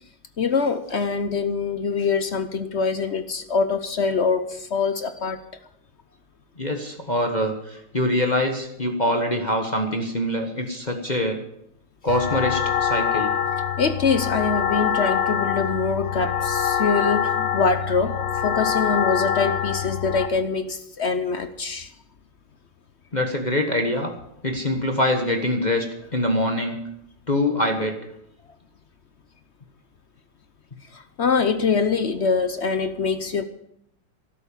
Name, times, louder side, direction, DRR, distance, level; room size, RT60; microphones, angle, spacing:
voice 1, 0.4-5.4 13.8-21.9 30.9-33.4, left 5 dB, 55° left, 11 dB, 0.8 m, -24 dB
voice 2, 6.6-11.4 12.0-13.3 23.1-24.1 24.4-25.9 26.1-26.8 27.3-28.0, left 1 dB, 25° left, 3 dB, 1.4 m, -24 dB
sound 1, 12.1-20.3, left 8 dB, 75° left, 1.8 m, -24 dB
12.5 x 12.0 x 7.1 m, 0.76 s
omnidirectional pair, 2.0 m